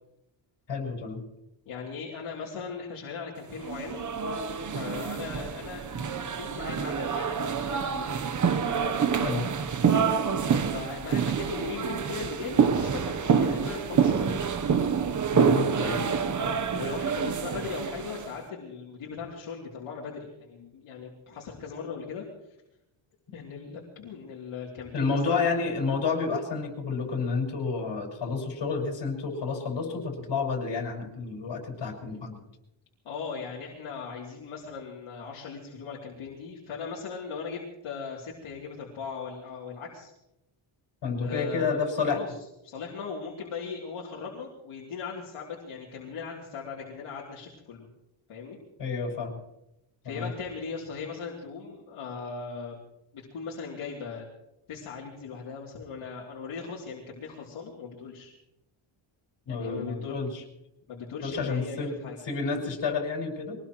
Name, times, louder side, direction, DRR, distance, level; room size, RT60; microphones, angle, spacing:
voice 1, 0.7-1.2 9.2-9.4 15.3-16.0 24.9-32.4 41.0-42.2 48.8-49.4 50.0-50.3 59.5-60.4 61.2-62.0 62.2-63.5, left 4 dB, 55° left, 2 dB, 6.0 m, -30 dB
voice 2, 1.6-4.0 4.6-8.1 8.7-9.0 10.7-14.5 16.7-22.3 23.3-25.4 33.0-40.1 41.2-41.8 42.1-42.3 42.6-47.9 48.3-48.6 50.0-52.8 53.1-54.2 54.7-58.3 59.5-60.2 60.9-62.2, left 5 dB, 75° left, -4 dB, 3.3 m, -39 dB
guia com passos, 3.6-18.3, right 6 dB, 40° right, 1.0 m, -27 dB
23.5 x 19.0 x 3.1 m, 0.86 s
cardioid pair, 130°, 49 cm